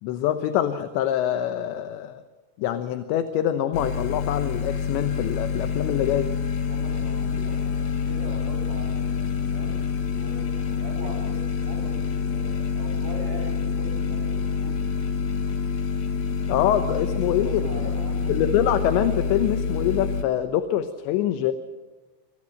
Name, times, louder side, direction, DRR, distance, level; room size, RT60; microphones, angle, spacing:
voice 1, 0.0-2.2 2.6-6.3 16.5-17.9 18.3-21.5, left 11 dB, 75° left, 9 dB, 3.1 m, -25 dB
sound 1, 3.7-20.2, left 5 dB, 50° left, 2.5 m, -27 dB
voice 2, 6.7-14.8 16.4-18.4, right 2 dB, 35° right, 2 dB, 8.2 m, -41 dB
26.5 x 26.0 x 6.5 m, 1.2 s
omnidirectional pair, 5.5 m